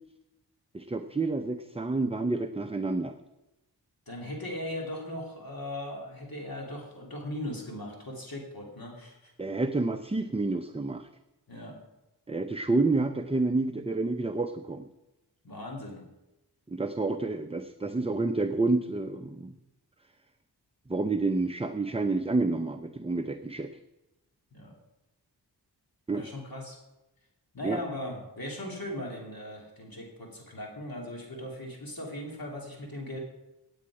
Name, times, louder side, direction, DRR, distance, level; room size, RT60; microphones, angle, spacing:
voice 1, 0.7-3.2 9.4-11.1 12.3-14.9 16.7-19.6 20.9-23.7 26.1-26.2 27.6-27.8, right 3 dB, 15° right, 7 dB, 0.6 m, -29 dB
voice 2, 4.1-9.3 11.5-11.8 15.4-16.1 24.5-24.7 26.1-26.8 27.5-33.2, left 1 dB, 55° left, -1 dB, 2.9 m, -38 dB
17.0 x 8.8 x 4.8 m, 0.97 s
wide cardioid pair, 80°, 41 cm